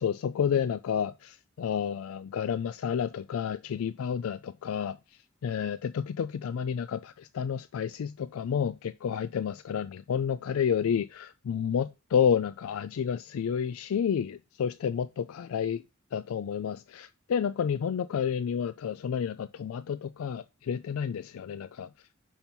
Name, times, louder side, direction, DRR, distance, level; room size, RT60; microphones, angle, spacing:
voice 1, 0.0-5.0 5.4-15.8 16.1-21.9, left 7 dB, 90° left, 0.4 m, -30 dB
5.7 x 4.4 x 5.3 m
head